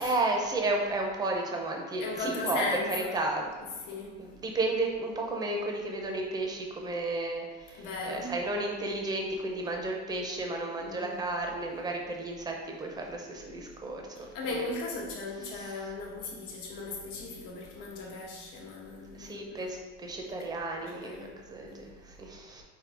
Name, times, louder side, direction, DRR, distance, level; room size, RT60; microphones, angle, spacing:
voice 1, 0.0-3.5 4.2-14.7 15.5-15.9 19.1-22.6, right 2 dB, 15° right, 1 dB, 0.5 m, -33 dB
voice 2, 2.0-3.2 3.9-4.2 7.7-8.3 10.8-11.2 14.2-19.7 20.4-20.5 20.8-21.4, left 3 dB, 85° left, -1 dB, 1.1 m, -37 dB
5.3 x 2.7 x 3.3 m, 1.3 s
cardioid pair, 150°, 31 cm